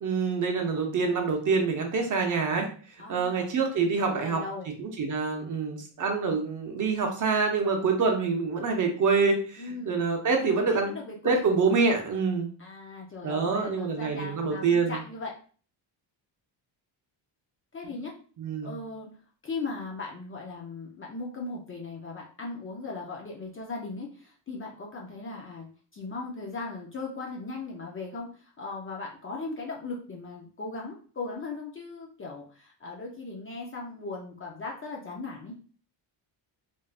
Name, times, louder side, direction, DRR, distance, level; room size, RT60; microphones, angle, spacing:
voice 1, 0.0-2.7 3.1-4.4 4.8-10.9 11.2-12.5 13.2-15.0 18.4-18.7, right 4 dB, 40° right, 3 dB, 0.7 m, -26 dB
voice 2, 3.0-3.5 4.0-4.7 9.6-10.0 10.4-11.4 12.6-15.3 17.7-18.1 18.6-19.1 19.4-25.7 25.9-35.6, left 3 dB, 30° left, -1 dB, 0.4 m, -38 dB
3.5 x 2.5 x 2.4 m, 0.41 s
cardioid pair, 155°, 47 cm